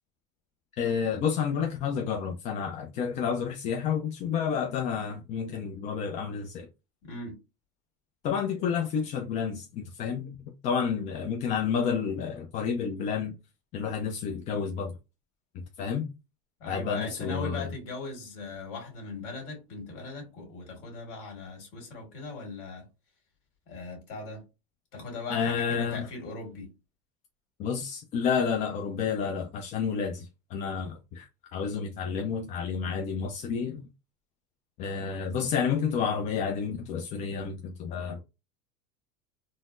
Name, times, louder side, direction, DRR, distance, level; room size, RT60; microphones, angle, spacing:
voice 1, 0.7-6.7 8.2-10.4 10.6-13.3 13.7-14.9 15.8-16.1 16.7-17.7 25.3-26.1 27.6-33.9 34.8-38.2, left 6 dB, 45° left, 0.5 m, -30 dB
voice 2, 7.0-7.4 16.6-22.9 23.7-24.4 24.9-26.7, left 3 dB, 65° left, 1.9 m, -39 dB
3.9 x 2.0 x 2.5 m
supercardioid pair, 125°, 17 cm